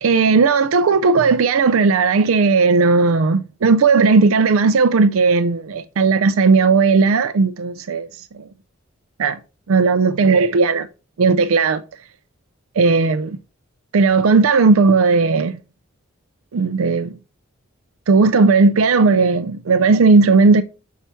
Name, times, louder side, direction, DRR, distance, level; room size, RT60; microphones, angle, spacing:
voice 1, 0.0-8.1 9.2-9.4 9.7-10.9 11.2-11.8 12.8-13.4 13.9-15.6 16.5-17.2 18.1-20.6, right 4 dB, 85° right, 0.5 m, -15 dB
6.9 x 4.7 x 4.3 m
head